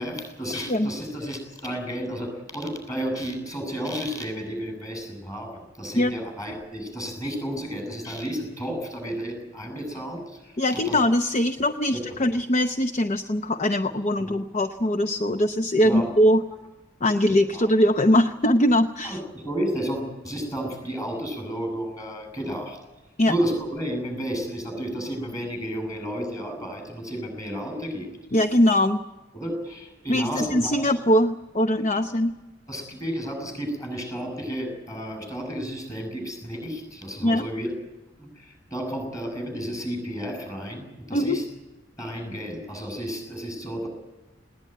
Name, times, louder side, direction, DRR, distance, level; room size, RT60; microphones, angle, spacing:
voice 1, 0.0-11.0 12.1-12.2 14.2-14.4 15.8-16.1 17.5-17.6 19.0-22.8 23.3-28.1 29.3-30.9 32.7-37.7 38.2-41.4 42.0-43.9, equal, 20° left, 4 dB, 7.7 m, -32 dB
voice 2, 10.6-16.4 17.0-19.2 23.2-23.3 28.3-29.0 30.1-32.3 37.2-37.5 41.1-41.4, left 1 dB, 35° left, 8 dB, 0.7 m, -21 dB
20.0 x 18.5 x 9.3 m, 1.1 s
head